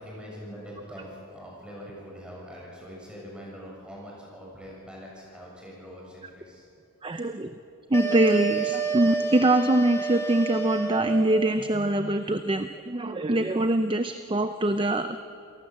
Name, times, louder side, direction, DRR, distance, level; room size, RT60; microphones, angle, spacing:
voice 1, 0.0-6.7 7.1-7.3, equal, 5° right, -3 dB, 7.0 m, -43 dB
voice 2, 7.0-7.5 7.9-15.2, right 1 dB, 20° right, 9 dB, 0.6 m, -24 dB
sound 1, 7.9-11.4, right 5 dB, 10° left, 2.0 m, -30 dB
28.0 x 18.5 x 7.5 m, 2.5 s
head